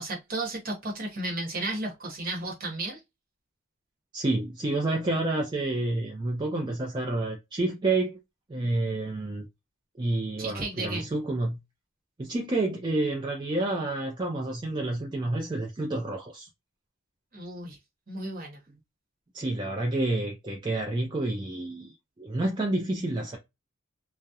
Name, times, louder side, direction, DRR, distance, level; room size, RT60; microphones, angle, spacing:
voice 1, 0.0-3.0 10.4-11.1 17.3-17.8 18.1-18.6, right 2 dB, 45° right, 0.9 m, -33 dB
voice 2, 4.1-8.2 8.5-9.5 10.0-11.6 12.2-16.5 19.3-23.4, right 2 dB, 20° right, 0.4 m, -29 dB
2.7 x 2.0 x 2.3 m
head